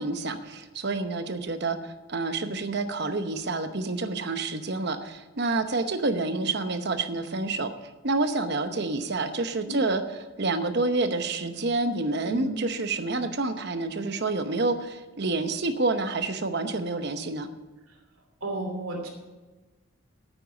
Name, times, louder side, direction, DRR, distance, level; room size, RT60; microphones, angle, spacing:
voice 1, 0.0-7.7 8.0-10.0 10.4-17.5, right 3 dB, 50° right, 9 dB, 0.9 m, -28 dB
voice 2, 12.2-12.6 17.9-18.0 18.4-19.1, right 1 dB, 75° right, 2 dB, 3.0 m, -33 dB
9.0 x 9.0 x 7.1 m, 1.2 s
head